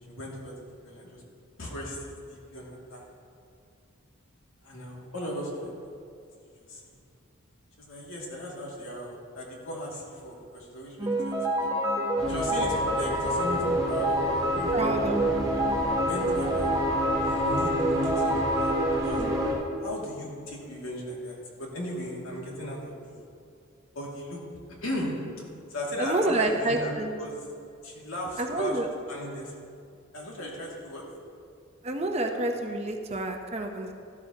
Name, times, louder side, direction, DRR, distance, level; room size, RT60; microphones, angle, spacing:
voice 1, 0.1-0.5 0.8-1.2 1.6-3.0 4.6-5.7 6.6-7.0 7.8-11.7 12.3-15.3 16.0-16.7 17.2-18.7 19.0-19.2 19.8-23.3 23.9-24.4 24.8-25.2 25.7-27.4 27.8-28.8 29.1-29.5 30.1-31.0, equal, 70° left, -3 dB, 2.3 m, -36 dB
sound 1, 11.0-19.5, right 1 dB, 15° right, 1.4 m, -26 dB
sound 2, 12.2-19.5, equal, 5° left, 2.2 m, -37 dB
voice 2, 14.7-15.2 26.0-27.1 28.4-28.9 31.8-33.9, right 2 dB, 30° right, 3 dB, 0.7 m, -28 dB
13.5 x 12.5 x 2.9 m, 2.4 s
head